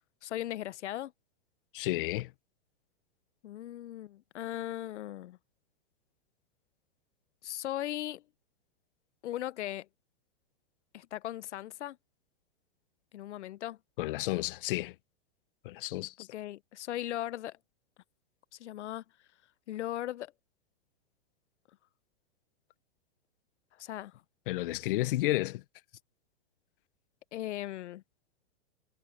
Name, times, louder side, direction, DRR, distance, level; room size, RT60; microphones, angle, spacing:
voice 1, 0.2-1.1 3.4-5.4 7.4-8.2 9.2-9.9 10.9-12.0 13.1-13.8 16.2-17.6 18.6-19.0 19.7-20.3 23.8-24.2 27.3-28.0, left 13 dB, 85° left, 0.7 m, -38 dB
voice 2, 1.7-2.3 14.0-14.9 15.6-16.1 24.5-25.6, left 17 dB, 50° left, 0.8 m, -31 dB
hypercardioid pair, 150°, 34 cm